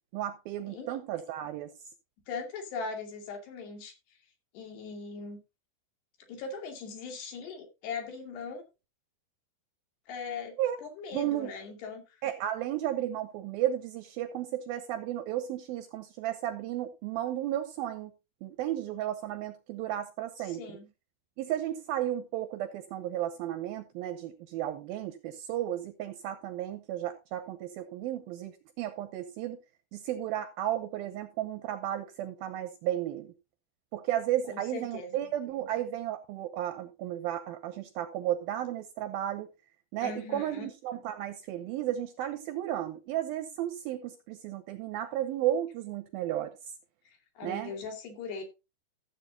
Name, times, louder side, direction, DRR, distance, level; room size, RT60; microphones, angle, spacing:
voice 1, 0.1-1.7 10.6-10.8 11.1-11.5 12.2-18.1 18.4-20.8 21.4-29.6 29.9-33.3 33.9-39.5 39.9-46.5 47.4-47.7, right 12 dB, 80° right, 2.2 m, -33 dB
voice 2, 0.7-1.0 2.3-3.9 4.5-5.4 6.3-8.6 10.1-12.0 20.4-20.9 34.5-35.3 40.0-40.7 47.1-48.4, left 4 dB, 75° left, 4.4 m, -40 dB
15.0 x 7.8 x 2.8 m
omnidirectional pair, 5.0 m